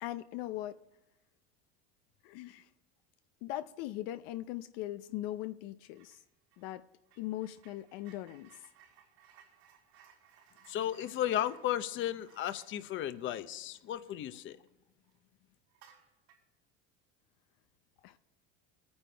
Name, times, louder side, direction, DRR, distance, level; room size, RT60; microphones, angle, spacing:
voice 1, 0.0-0.8 2.2-2.7 3.4-6.2 6.6-6.8 7.2-8.7 18.0-18.2, left 14 dB, 70° left, 0.6 m, -40 dB
sound 1, 5.9-6.2 6.5-14.7 15.0-15.2 15.7-16.5, right 8 dB, 90° right, 4.6 m, -63 dB
voice 2, 10.7-14.6, left 11 dB, 40° left, 0.8 m, -34 dB
21.5 x 9.7 x 3.4 m
supercardioid pair, 125°, 31 cm